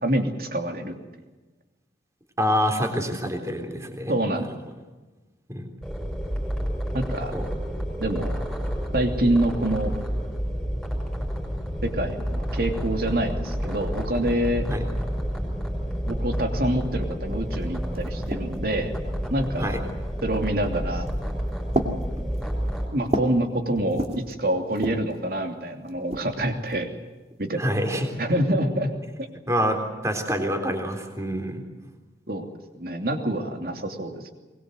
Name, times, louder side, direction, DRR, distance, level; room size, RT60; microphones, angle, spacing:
voice 1, 0.0-0.9 4.1-4.4 6.9-7.3 8.0-8.4 8.9-9.9 11.8-14.7 16.1-18.9 19.3-19.8 20.2-21.1 22.9-26.9 27.4-27.7 28.2-28.9 32.3-32.5 32.7-34.3, right 1 dB, 55° right, 5 dB, 3.0 m, -26 dB
voice 2, 2.4-4.2 5.5-5.7 7.3-7.5 14.7-14.8 19.6-19.8 27.6-28.1 29.5-31.6, equal, 15° right, 4 dB, 3.6 m, -26 dB
sound 1, 5.8-22.9, equal, ahead, 5.8 m, -29 dB
sound 2, 17.3-17.4 17.6-18.8 19.6-20.1 20.9-21.3 21.7-23.4 23.8-24.3 24.7-25.2 25.9-26.9, right 1 dB, 35° right, 2.5 m, -32 dB
23.5 x 21.0 x 8.0 m, 1.2 s
head